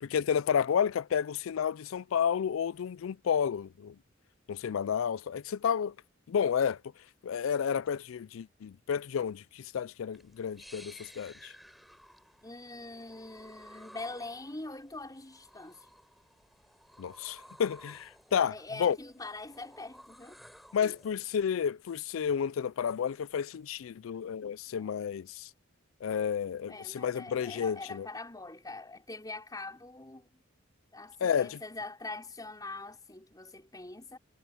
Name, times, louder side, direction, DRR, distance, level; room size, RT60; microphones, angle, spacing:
voice 1, 0.0-4.0 4.5-5.9 6.3-6.8 7.2-11.5 17.0-18.5 18.8-19.0 20.7-25.5 26.0-28.1 31.2-31.6, left 7 dB, 80° left, 0.4 m, -31 dB
sound 1, 10.1-21.2, equal, ahead, 7.2 m, -55 dB
voice 2, 12.4-15.9 18.5-20.4 20.8-20.9 24.7-25.0 26.7-30.3 30.9-34.2, left 2 dB, 20° left, 4.8 m, -43 dB
head